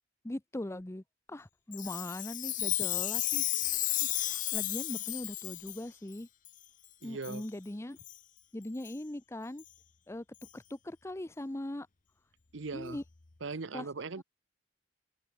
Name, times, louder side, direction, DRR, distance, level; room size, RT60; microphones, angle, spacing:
voice 1, 0.2-3.4 4.1-6.3 7.0-8.0 8.5-9.6 10.1-10.2 10.5-11.9 12.7-13.0 13.7-13.9 14.2-14.3, left 1 dB, 15° left, 0.7 m, -40 dB
Chime, 1.7-5.8 6.5-6.6 7.2-7.4 8.0-8.2 8.8-8.9 9.6-9.7 10.4-10.5, left 14 dB, 45° left, 0.9 m, -33 dB
voice 2, 7.0-7.4 12.5-13.0 13.4-14.2, right 4 dB, 75° right, 0.8 m, -39 dB
head